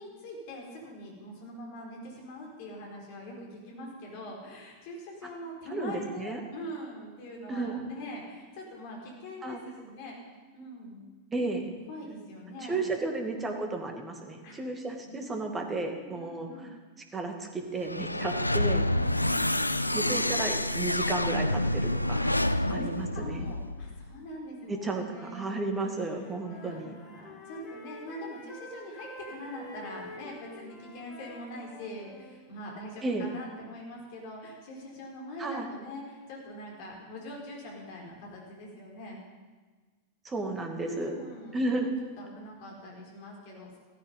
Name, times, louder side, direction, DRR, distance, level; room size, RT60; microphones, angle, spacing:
voice 1, 0.0-10.2 10.5-11.0 11.9-12.9 14.4-14.6 15.0-15.2 15.7-16.7 18.9-20.2 22.1-22.9 23.1-25.5 26.5-39.2 40.8-41.6 42.2-43.8, equal, 50° left, -1 dB, 4.8 m, -43 dB
voice 2, 5.7-6.4 7.5-7.8 9.4-9.6 11.3-11.8 12.6-16.7 17.1-18.9 19.9-22.4 22.7-23.4 24.7-26.9 33.0-33.3 35.4-35.7 40.2-41.2 41.5-42.0, right 2 dB, 15° right, 4 dB, 2.4 m, -33 dB
sound 1, 17.8-24.1, left 1 dB, 85° left, 0.4 m, -28 dB
Wind instrument woodwind instrument, 25.6-32.4, left 1 dB, 25° left, 3.1 m, -48 dB
15.5 x 14.0 x 5.5 m, 1.4 s
figure-of-eight pair, 90°, 0 cm